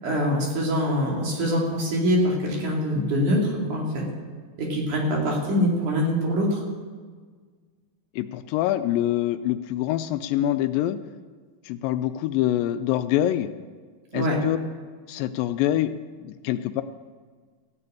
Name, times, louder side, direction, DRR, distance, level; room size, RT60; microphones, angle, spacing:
voice 1, 0.0-3.4 3.7-3.9 4.6-6.6 14.1-14.4, equal, 60° right, -2 dB, 4.1 m, -24 dB
voice 2, 8.2-11.0 11.7-13.5 14.1-14.6 15.1-15.9 16.2-16.8, left 13 dB, 85° left, 10 dB, 2.2 m, -25 dB
15.0 x 6.9 x 8.6 m, 1.5 s
omnidirectional pair, 4.0 m